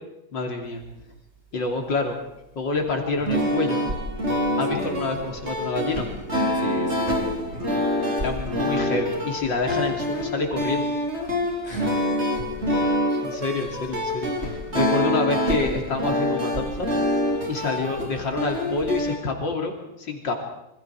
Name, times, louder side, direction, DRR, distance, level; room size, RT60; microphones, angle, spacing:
voice 1, 0.3-0.8 1.5-2.2 2.6-3.9 4.6-6.1 8.2-11.0 13.2-16.9 17.5-20.3, left 3 dB, 85° left, 2 dB, 3.7 m, -27 dB
sound 1, 3.1-19.2, equal, 35° right, 4.2 m, -26 dB
voice 2, 4.6-5.4 6.5-7.9 11.6-12.1, equal, 35° left, 0 dB, 4.8 m, -35 dB
27.5 x 25.5 x 4.8 m, 0.89 s
omnidirectional pair, 2.0 m